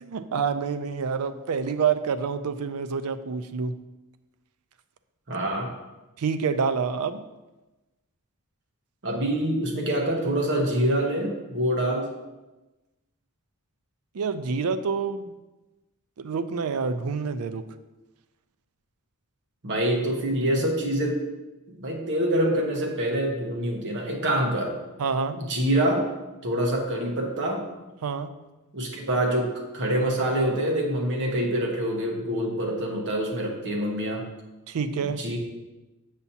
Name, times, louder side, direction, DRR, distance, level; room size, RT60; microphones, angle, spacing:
voice 1, 0.0-3.7 6.2-7.2 14.1-15.3 16.2-17.6 25.0-25.4 28.0-28.3 34.7-35.2, right 5 dB, 70° right, 11 dB, 0.4 m, -27 dB
voice 2, 5.3-5.7 9.0-12.1 19.6-21.2 21.7-24.7 25.3-26.1 26.4-27.6 28.7-29.5 29.7-34.2 35.2-35.4, right 1 dB, 55° right, 1 dB, 1.1 m, -25 dB
7.1 x 7.0 x 2.8 m, 1.1 s
head